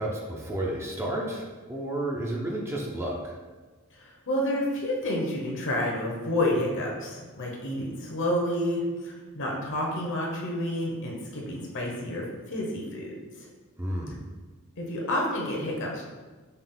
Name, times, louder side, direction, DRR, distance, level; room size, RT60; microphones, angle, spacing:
voice 1, 0.0-3.3 13.8-14.2, right 1 dB, 10° right, -2 dB, 0.5 m, -31 dB
voice 2, 3.9-13.5 14.8-16.0, left 1 dB, 60° left, -2 dB, 1.0 m, -29 dB
5.5 x 2.4 x 3.7 m, 1.3 s
head